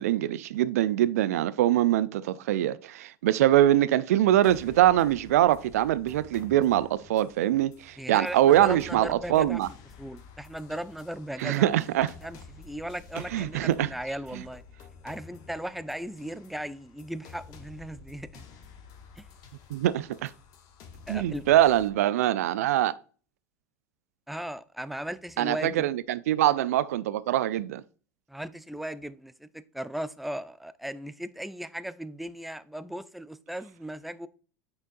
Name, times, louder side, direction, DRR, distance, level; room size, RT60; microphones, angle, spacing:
voice 1, 0.0-9.7 11.4-12.1 13.3-13.9 19.7-20.3 21.1-22.9 25.4-27.8, right 13 dB, 70° right, 0.4 m, -23 dB
sound 1, 4.4-21.9, left 5 dB, 50° left, 1.0 m, -50 dB
voice 2, 8.0-9.6 10.0-11.7 12.2-14.6 15.0-18.5 19.2-19.3 21.1-21.4 24.3-25.9 28.3-34.3, right 1 dB, ahead, 0.4 m, -37 dB
8.5 x 4.4 x 2.6 m
figure-of-eight pair, 75°, 8 cm